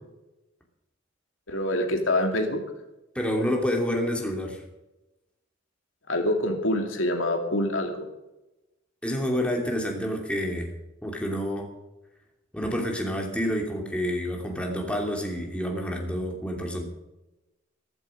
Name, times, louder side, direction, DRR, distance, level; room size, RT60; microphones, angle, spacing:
voice 1, 1.5-2.6 6.1-8.1, left 1 dB, 75° left, 3 dB, 2.6 m, -25 dB
voice 2, 3.1-4.6 9.0-10.7 11.0-11.7 12.5-16.8, equal, 5° left, 0 dB, 2.9 m, -28 dB
15.5 x 14.5 x 5.2 m, 0.99 s
head